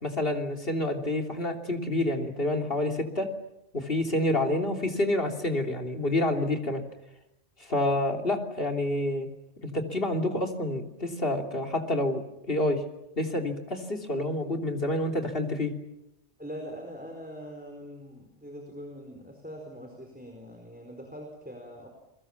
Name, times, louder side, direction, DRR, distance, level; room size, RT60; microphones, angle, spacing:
voice 1, 0.0-3.3 3.7-6.8 7.6-9.3 9.6-12.8 13.2-15.7, left 1 dB, 50° left, 3 dB, 3.5 m, -28 dB
voice 2, 16.4-21.9, equal, 5° right, 3 dB, 4.6 m, -42 dB
29.5 x 23.0 x 7.3 m, 0.89 s
omnidirectional pair, 1.2 m